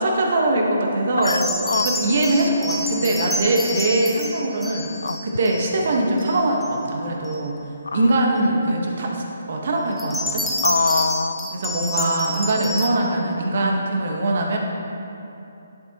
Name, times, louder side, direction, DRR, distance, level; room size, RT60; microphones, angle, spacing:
voice 1, 0.0-1.5 1.8-4.9 5.2-7.6 7.9-10.4 11.5-14.6, right 1 dB, 60° right, 0 dB, 1.3 m, -22 dB
voice 2, 1.2-1.9 5.0-5.2 7.9-8.1 10.6-11.5, left 4 dB, 85° left, 11 dB, 0.4 m, -23 dB
sound 1, 1.2-5.8 6.2-6.7 7.2-7.3 9.9-12.9, left 1 dB, 5° left, 0.7 m, -29 dB
10.5 x 7.7 x 3.0 m, 2.8 s
hypercardioid pair, 155°, 0 cm